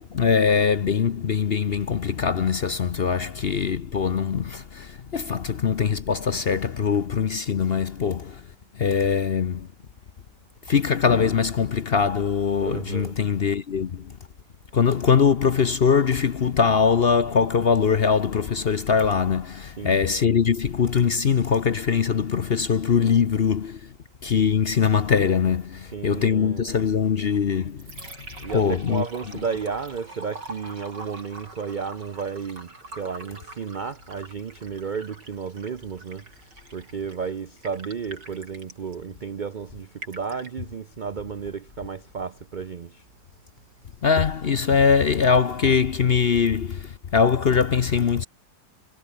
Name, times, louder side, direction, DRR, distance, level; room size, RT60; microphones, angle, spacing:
voice 1, 0.1-8.4 8.8-9.7 10.7-14.0 14.7-23.8 24.2-27.8 28.5-29.0 44.0-48.3, left 6 dB, 45° left, 0.8 m, -22 dB
voice 2, 12.6-13.2 19.7-20.1 25.9-26.7 28.4-36.3 36.7-43.0, right 6 dB, 60° right, 0.5 m, -33 dB
Liquid, 27.5-46.5, right 2 dB, 85° right, 7.4 m, -46 dB
omnidirectional pair, 1.8 m